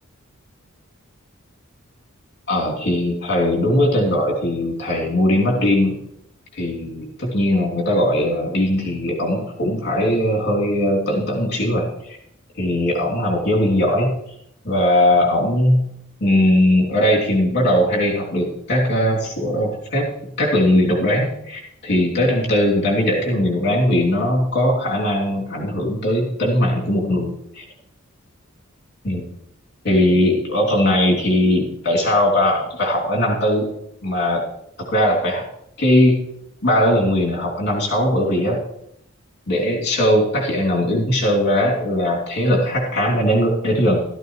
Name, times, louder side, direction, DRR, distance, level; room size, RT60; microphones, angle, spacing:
voice 1, 2.5-5.9 6.6-12.2 12.6-14.1 14.6-15.9 16.2-20.1 20.4-27.6 29.0-29.3 29.8-33.7 34.0-34.5 34.9-35.4 35.8-36.2 36.6-38.6 39.5-44.0, left 1 dB, 55° left, -2 dB, 3.0 m, -19 dB
14.0 x 13.5 x 3.2 m, 0.76 s
head